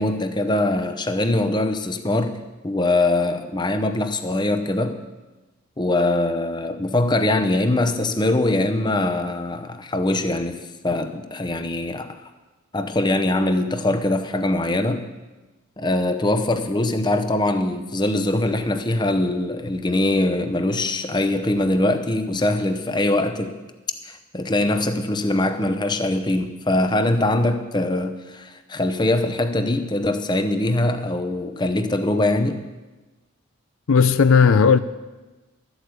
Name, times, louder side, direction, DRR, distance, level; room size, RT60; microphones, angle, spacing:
voice 1, 0.0-5.0 5.8-12.2 12.7-15.1 15.8-23.6 24.0-32.7, left 2 dB, 20° left, 0.7 m, -22 dB
voice 2, 33.9-34.8, left 5 dB, 70° left, 0.5 m, -15 dB
12.5 x 8.0 x 8.1 m
head